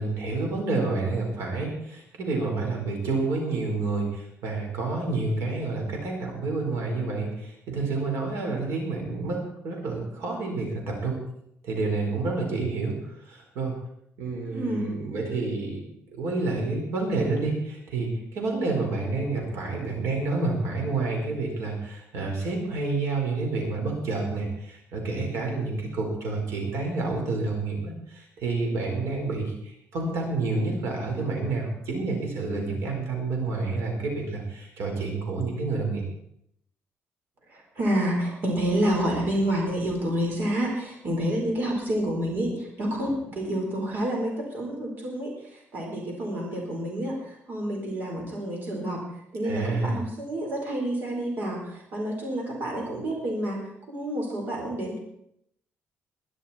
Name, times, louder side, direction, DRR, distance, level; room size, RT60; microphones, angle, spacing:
voice 1, 0.0-9.4 9.6-11.2 11.6-12.9 13.2-13.7 14.2-15.8 16.1-36.0 49.4-50.0, right 3 dB, 75° right, 1 dB, 4.5 m, -29 dB
voice 2, 14.5-14.9 37.5-49.0 49.3-55.0, right 1 dB, 45° right, 0 dB, 4.4 m, -29 dB
21.0 x 11.5 x 4.4 m, 0.74 s
cardioid pair, 160°, 5 cm